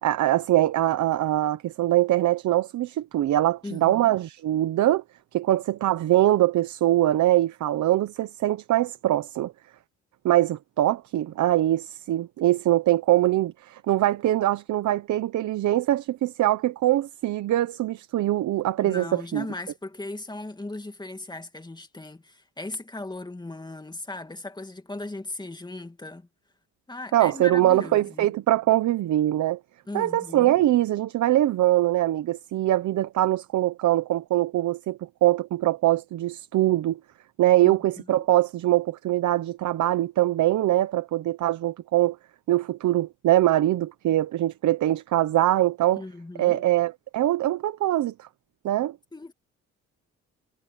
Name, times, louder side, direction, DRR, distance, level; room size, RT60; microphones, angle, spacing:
voice 1, 0.0-5.0 5.3-9.5 10.2-19.4 27.1-29.6 29.9-37.0 37.4-42.2 42.5-46.0 46.4-48.3 48.6-49.0, right 14 dB, 70° right, 1.0 m, -23 dB
voice 2, 3.6-4.2 18.8-26.3 26.9-28.3 29.9-30.6 37.6-37.8 38.1-38.3 46.0-46.6 49.1-49.3, left 2 dB, 15° left, 2.3 m, -37 dB
cardioid pair, 90°, 30 cm